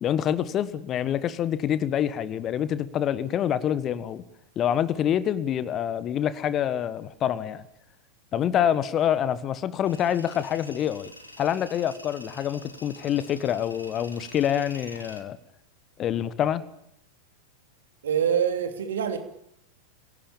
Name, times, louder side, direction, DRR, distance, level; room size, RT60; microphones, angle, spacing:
voice 1, 0.0-4.2 4.5-7.6 8.3-11.1 11.4-15.4 16.0-16.6, left 10 dB, 30° left, 15 dB, 1.4 m, -26 dB
Tools, 9.9-15.2, left 1 dB, 85° left, 2.6 m, -47 dB
voice 2, 18.0-19.2, right 8 dB, 65° right, 6 dB, 3.1 m, -25 dB
26.0 x 17.5 x 8.8 m, 0.76 s
figure-of-eight pair, 90°, 0 cm